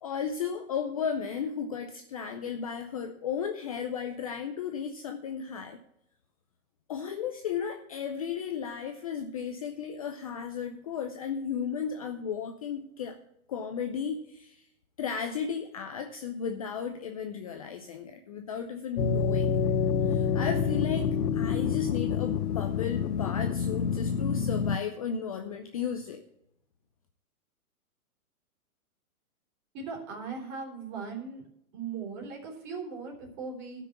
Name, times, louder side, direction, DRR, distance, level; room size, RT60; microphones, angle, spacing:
voice 1, 0.0-5.8 6.9-13.2 13.5-14.6 15.0-19.7 20.1-26.2, left 7 dB, 25° left, 5 dB, 0.5 m, -34 dB
sound 1, 19.0-24.8, left 6 dB, 85° left, 0.9 m, -27 dB
voice 2, 29.7-31.4 31.7-33.9, right 5 dB, 30° right, 0 dB, 3.8 m, -38 dB
11.5 x 6.1 x 8.0 m, 0.75 s
hypercardioid pair, 155°, 44 cm